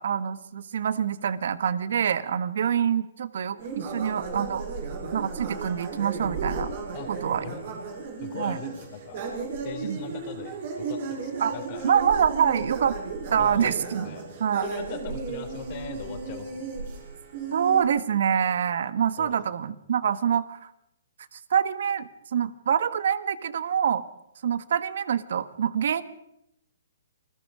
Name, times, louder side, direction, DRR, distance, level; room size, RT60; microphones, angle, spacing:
voice 1, 0.0-4.6 5.1-6.7 7.1-7.4 8.3-8.6 9.8-10.0 11.4-11.6 11.8-13.0 13.3-14.1 14.4-14.6 17.5-20.7 21.3-24.0 24.4-26.0, right 8 dB, 65° right, 14 dB, 1.5 m, -25 dB
sound 1, 3.6-17.8, right 4 dB, 50° right, 7.4 m, -35 dB
voice 2, 8.2-9.2 9.6-12.0 13.4-14.3 14.6-16.7 19.2-19.4, left 8 dB, 35° left, 6 dB, 4.0 m, -40 dB
28.0 x 21.0 x 5.0 m, 0.79 s
hypercardioid pair, 145°, 0 cm